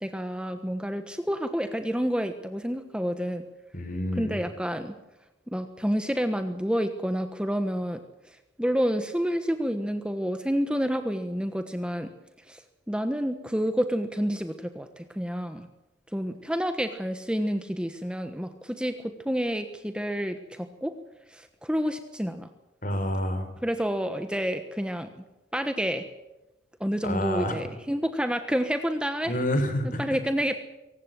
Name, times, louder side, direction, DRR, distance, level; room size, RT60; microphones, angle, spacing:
voice 1, 0.0-3.4 4.1-4.9 5.5-8.0 8.6-12.1 12.5-12.6 12.9-15.7 16.1-20.9 21.3-22.5 23.6-25.1 25.5-26.0 26.8-29.3 30.0-30.6, equal, 5° right, 8 dB, 1.2 m, -29 dB
voice 2, 3.7-4.4 22.8-23.5 27.0-27.5 29.3-30.1, left 1 dB, 45° left, 8 dB, 4.5 m, -28 dB
23.5 x 18.5 x 7.7 m, 1.0 s
head